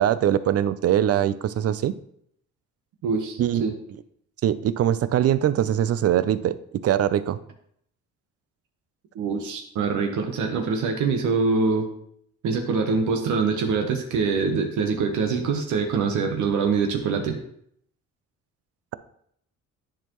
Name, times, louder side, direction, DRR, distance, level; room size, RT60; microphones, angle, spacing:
voice 1, 0.0-1.9 3.4-3.6 4.4-6.6 6.8-7.4, right 11 dB, 55° right, 14 dB, 0.5 m, -22 dB
voice 2, 3.0-3.7 9.1-11.9 12.4-17.4, right 5 dB, 75° right, 4 dB, 1.0 m, -24 dB
9.9 x 4.5 x 3.0 m, 0.69 s
cardioid pair, 90°, 30 cm